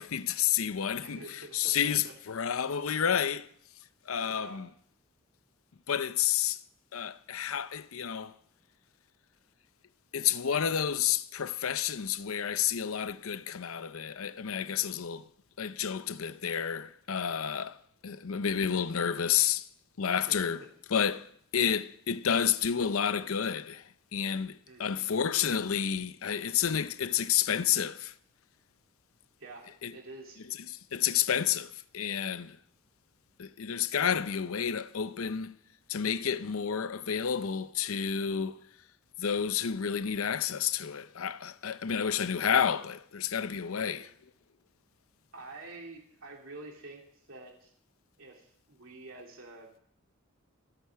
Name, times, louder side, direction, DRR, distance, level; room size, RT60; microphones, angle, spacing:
voice 1, 0.0-1.2 1.5-3.5 4.1-4.7 5.9-6.6 6.9-8.3 10.1-15.3 15.6-17.8 18.0-19.6 20.0-20.6 20.9-21.3 21.5-23.8 24.1-28.1 29.8-29.9 30.9-32.6 33.4-35.5 35.9-38.6 39.2-44.1, left 8 dB, 75° left, 0.6 m, -30 dB
voice 2, 1.0-2.1 2.7-2.8 4.2-4.6 20.1-20.5 24.7-25.0 29.4-30.4 43.7-44.1 45.3-47.0 47.3-47.7 48.2-49.7, right 2 dB, 65° right, 2.9 m, -48 dB
26.5 x 8.9 x 4.7 m
head